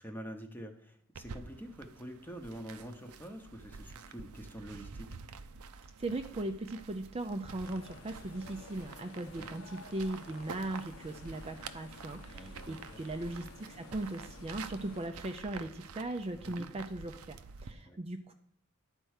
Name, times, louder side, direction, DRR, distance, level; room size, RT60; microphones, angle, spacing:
voice 1, 0.0-5.1 9.4-9.5 12.3-13.0 16.5-16.7 17.9-18.0, equal, 10° left, 5 dB, 0.8 m, -46 dB
sound 1, 1.1-17.7, right 5 dB, 80° right, 0.6 m, -49 dB
voice 2, 6.0-18.3, right 2 dB, 25° right, 6 dB, 0.4 m, -38 dB
sound 2, 7.6-15.1, left 4 dB, 80° left, 1.1 m, -53 dB
11.0 x 4.5 x 6.4 m, 0.70 s
head